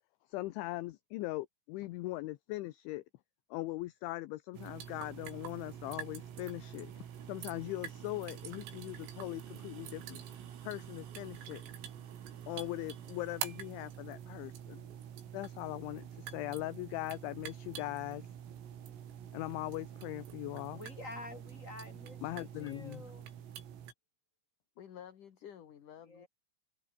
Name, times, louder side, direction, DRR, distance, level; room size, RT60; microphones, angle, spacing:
voice 1, 0.3-3.0 3.5-7.0 7.3-10.2 10.6-11.6 12.5-14.9 15.3-18.3 19.3-20.8 22.2-23.0, left 18 dB, 75° left, 3.1 m, -40 dB
sound 1, 4.5-23.9, right 9 dB, 85° right, 6.0 m, -46 dB
voice 2, 20.7-23.3 26.0-26.3, left 2 dB, 15° left, 7.3 m, -49 dB
voice 3, 24.8-26.3, left 9 dB, 50° left, 3.0 m, -51 dB
omnidirectional pair, 5.9 m